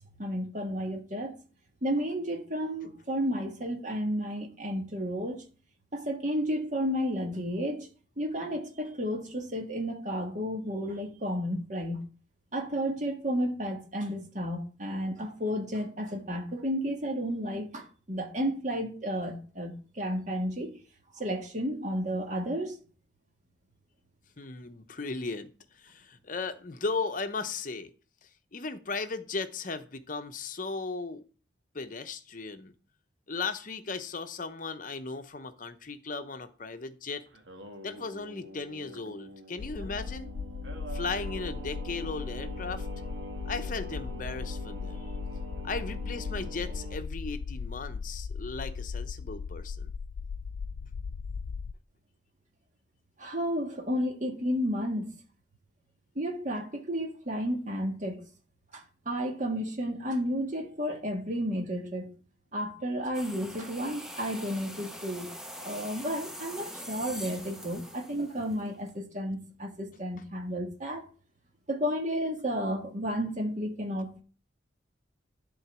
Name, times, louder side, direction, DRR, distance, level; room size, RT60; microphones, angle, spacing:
voice 1, 0.2-1.3 1.8-5.4 5.9-7.9 8.2-12.0 12.5-20.7 21.1-22.8 53.2-55.2 56.1-58.2 58.7-62.1 62.5-71.0 71.7-74.2, equal, 40° right, 1.7 m, -32 dB
voice 2, 24.4-25.5 25.8-27.9 28.5-31.2 31.7-32.7 33.3-37.2 37.8-40.3 40.9-42.9 43.5-45.1 45.6-49.9, left 4 dB, 45° left, 0.8 m, -36 dB
Singing, 37.3-47.0, right 2 dB, 70° right, 1.5 m, -44 dB
sound 1, 39.6-51.7, left 5 dB, 80° left, 0.4 m, -37 dB
sound 2, 63.1-68.9, equal, 5° right, 0.8 m, -43 dB
11.0 x 4.0 x 6.0 m
head